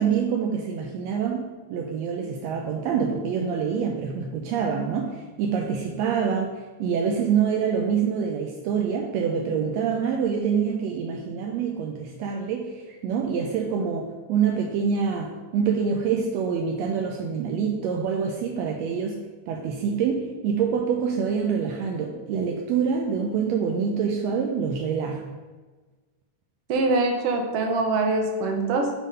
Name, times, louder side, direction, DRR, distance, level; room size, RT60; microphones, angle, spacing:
voice 1, 0.0-19.2 19.5-25.2, right 6 dB, 80° right, 1 dB, 1.6 m, -26 dB
voice 2, 26.7-28.9, right 3 dB, 65° right, 3 dB, 1.6 m, -23 dB
7.2 x 3.8 x 5.5 m, 1.3 s
omnidirectional pair, 3.5 m